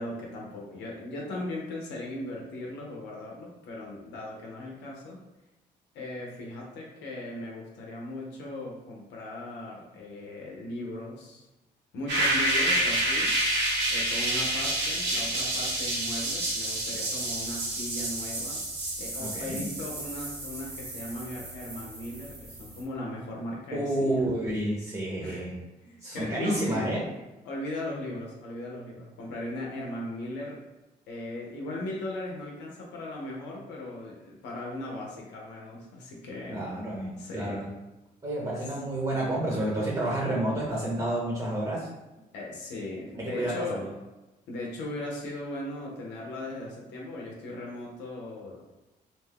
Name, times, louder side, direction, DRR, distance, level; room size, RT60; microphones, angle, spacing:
voice 1, 0.0-5.2 5.9-11.5 11.9-13.4 13.9-18.6 19.0-24.3 25.2-25.5 25.8-26.9 27.4-30.6 31.1-36.6 37.2-37.6 38.6-38.7 42.3-43.9 44.5-48.6, left 1 dB, 90° left, -2 dB, 0.6 m, -38 dB
sound 1, 12.1-22.8, right 1 dB, 85° right, 1.0 m, -29 dB
voice 2, 19.2-19.6 23.7-25.5 26.0-27.0 36.5-37.7 38.2-41.9 43.2-43.9, right 1 dB, 25° right, -4 dB, 0.9 m, -30 dB
2.5 x 2.2 x 3.4 m, 1.1 s
cardioid pair, 70°, 18 cm